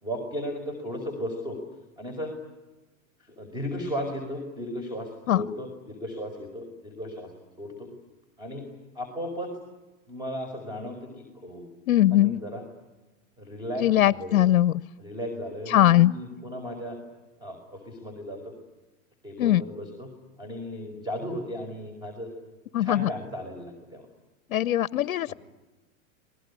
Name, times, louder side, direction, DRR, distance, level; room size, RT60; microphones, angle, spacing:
voice 1, 0.0-1.6 2.0-2.3 3.2-7.3 7.6-7.9 8.4-8.7 9.0-9.5 10.1-11.7 12.1-12.6 13.4-14.4 15.0-17.0 17.4-18.5 19.2-20.1 20.4-22.3 22.8-24.1 25.3-25.4, equal, 10° right, 5 dB, 5.3 m, -35 dB
voice 2, 11.9-12.4 13.8-14.7 15.7-16.1 19.4-19.6 22.7-23.1 24.5-25.3, left 13 dB, 80° left, 17 dB, 0.9 m, -21 dB
28.0 x 20.5 x 9.9 m, 1.1 s
hypercardioid pair, 135°, 40 cm